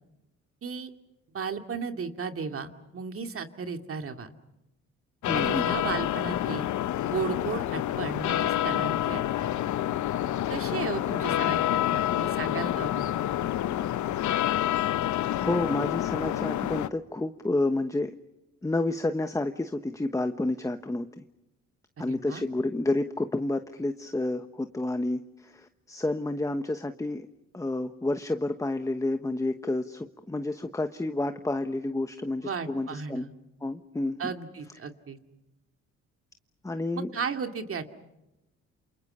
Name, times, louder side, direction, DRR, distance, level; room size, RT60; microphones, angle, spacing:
voice 1, 1.3-4.3 5.3-6.7 7.0-9.5 10.5-13.2 22.0-22.4 32.4-33.3 34.2-35.2 36.9-37.9, right 5 dB, 45° right, 6 dB, 2.5 m, -35 dB
sound 1, 5.2-16.9, left 12 dB, 70° left, 0.9 m, -28 dB
voice 2, 5.2-5.6 10.7-10.8 15.4-18.1 18.6-21.2 22.0-27.3 27.5-33.3 33.6-34.3 36.6-37.1, left 2 dB, 10° left, 8 dB, 1.1 m, -30 dB
29.0 x 28.0 x 5.6 m, 0.95 s
cardioid pair, 90°, 30 cm